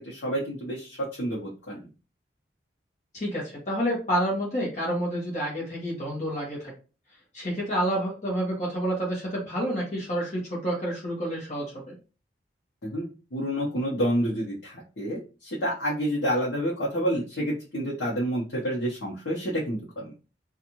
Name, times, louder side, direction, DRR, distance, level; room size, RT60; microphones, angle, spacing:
voice 1, 0.1-1.9 12.8-20.1, equal, 75° left, -6 dB, 0.9 m, -29 dB
voice 2, 3.1-6.7 7.3-11.9, equal, 40° left, -4 dB, 1.1 m, -29 dB
2.6 x 2.4 x 2.9 m, 0.33 s
head